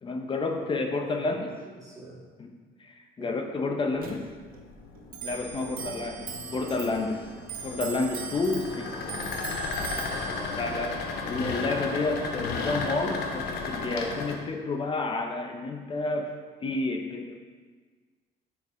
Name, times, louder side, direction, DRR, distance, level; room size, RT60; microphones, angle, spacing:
voice 1, 0.0-1.5 2.8-4.3 5.2-6.2 6.5-7.2 7.6-8.8 10.6-10.9 11.2-16.3 16.6-17.4, left 3 dB, 30° left, 4 dB, 0.6 m, -30 dB
voice 2, 0.6-2.2 3.2-3.4 5.5-6.0 8.6-9.7 10.2-10.8, right 1 dB, 20° right, -6 dB, 1.8 m, -46 dB
Clock, 4.0-13.9, right 5 dB, 60° right, 0.8 m, -41 dB
sound 1, 4.5-14.3, left 4 dB, 75° left, 0.8 m, -34 dB
5.8 x 5.4 x 3.6 m, 1.5 s
cardioid pair, 110°, 17 cm